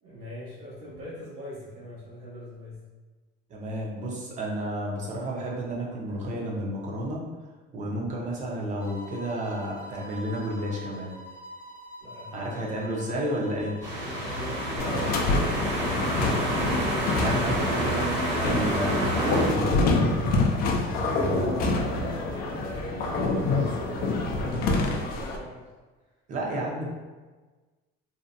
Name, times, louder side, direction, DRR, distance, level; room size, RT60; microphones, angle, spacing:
voice 1, 0.0-2.8 12.0-13.0 14.2-15.7 20.9-25.6, equal, 80° right, -7 dB, 1.2 m, -41 dB
voice 2, 3.5-7.2 7.7-11.1 12.3-13.8 17.1-19.8 26.3-26.9, right 1 dB, 40° right, -3 dB, 0.7 m, -31 dB
sound 1, 8.8-17.2, equal, 20° left, 0.7 m, -45 dB
sound 2, 13.8-19.5, right 1 dB, 60° right, 1.4 m, -28 dB
sound 3, 14.8-25.4, left 2 dB, 50° left, 0.4 m, -26 dB
2.7 x 2.1 x 2.5 m, 1.3 s
cardioid pair, 135°, 20 cm